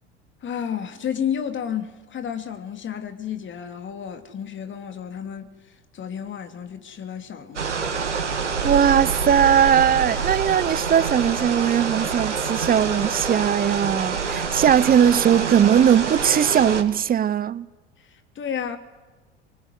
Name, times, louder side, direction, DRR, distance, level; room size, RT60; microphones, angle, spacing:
voice 1, 0.4-8.1 18.0-18.8, left 8 dB, 35° left, 3.0 m, -32 dB
sound 1, 7.6-16.8, right 5 dB, 90° right, 2.4 m, -26 dB
voice 2, 8.6-17.7, right 9 dB, 25° right, 0.9 m, -19 dB
25.0 x 23.5 x 9.5 m
figure-of-eight pair, 75°, 34 cm